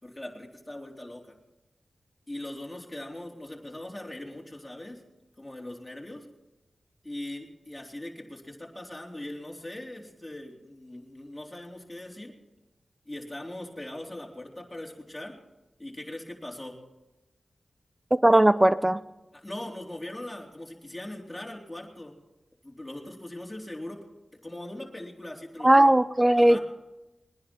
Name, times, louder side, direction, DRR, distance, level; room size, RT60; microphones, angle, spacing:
voice 1, 0.0-1.2 2.3-5.0 5.4-6.2 7.0-12.3 13.1-15.3 15.8-16.8 19.3-22.1 22.6-24.1 24.4-25.9 26.3-26.6, left 1 dB, 20° left, -1 dB, 3.7 m, -40 dB
voice 2, 18.1-19.0 25.6-26.6, right 1 dB, 20° right, 15 dB, 0.8 m, -18 dB
22.0 x 10.5 x 4.6 m, 1.0 s
cardioid pair, 40°, 0 cm